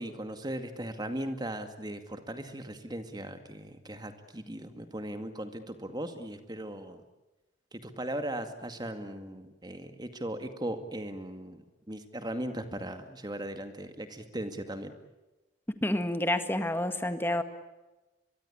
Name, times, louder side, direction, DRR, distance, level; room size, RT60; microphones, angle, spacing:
voice 1, 0.0-7.0 7.7-14.9, right 1 dB, 25° right, 8 dB, 2.2 m, -38 dB
voice 2, 15.8-17.4, left 1 dB, 10° left, 9 dB, 1.7 m, -29 dB
24.0 x 23.0 x 8.8 m, 1.1 s
head